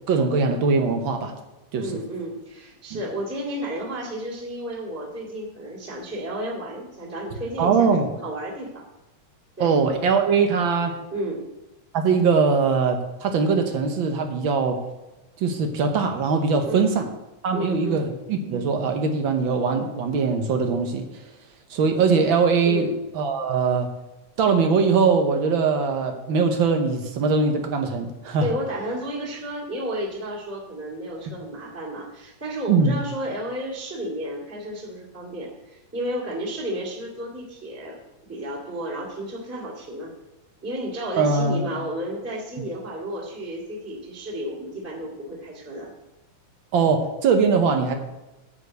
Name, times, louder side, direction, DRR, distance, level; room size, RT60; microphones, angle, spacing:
voice 1, 0.1-1.3 1.7-1.9 2.9-3.0 7.6-8.1 9.6-10.9 11.9-14.8 15.4-17.1 17.4-21.0 21.7-23.9 24.4-28.5 32.7-32.9 41.2-41.7 46.7-47.9, right 5 dB, 70° right, 5 dB, 1.2 m, -21 dB
voice 2, 1.8-8.8 9.6-9.8 11.1-11.4 16.6-16.9 17.5-18.1 22.6-22.9 28.4-38.0 38.2-40.1 40.6-45.9, right 1 dB, 5° right, -4 dB, 1.7 m, -32 dB
9.5 x 5.2 x 7.8 m, 1.0 s
omnidirectional pair, 3.3 m